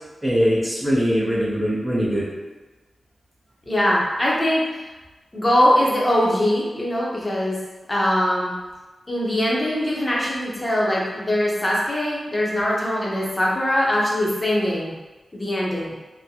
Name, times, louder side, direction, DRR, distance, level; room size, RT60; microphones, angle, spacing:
voice 1, 0.2-2.2, equal, 15° right, -7 dB, 0.7 m, -21 dB
voice 2, 3.7-4.8 5.3-7.6 7.9-8.5 9.1-14.9 15.3-15.9, left 1 dB, 20° left, -5 dB, 0.7 m, -22 dB
3.8 x 2.1 x 2.8 m, 1.2 s
wide cardioid pair, 120°, 0 cm